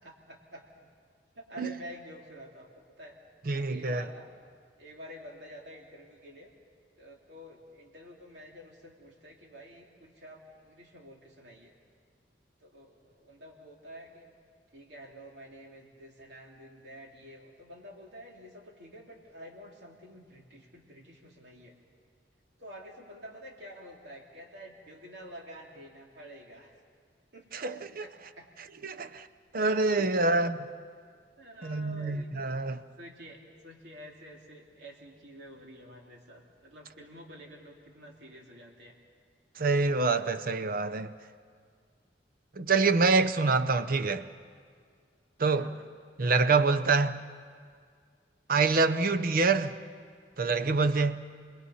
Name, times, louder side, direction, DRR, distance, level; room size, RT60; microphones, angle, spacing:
voice 1, 0.0-0.6 1.3-2.7 3.0-3.2 3.7-4.3 4.8-6.5 7.0-11.7 12.6-14.3 14.7-21.7 22.6-26.8 27.3-27.5 28.0-28.5 30.0-30.6 31.4-32.4 33.0-38.9 45.5-45.9, equal, 70° right, 2.9 m, -49 dB
voice 2, 3.5-4.0 27.5-28.0 28.8-29.3 29.5-30.6 31.6-32.8 39.6-41.1 42.6-44.3 45.4-45.7 46.2-47.2 48.5-49.7 50.4-51.2, right 3 dB, 55° right, 0.7 m, -26 dB
29.5 x 21.0 x 5.6 m
head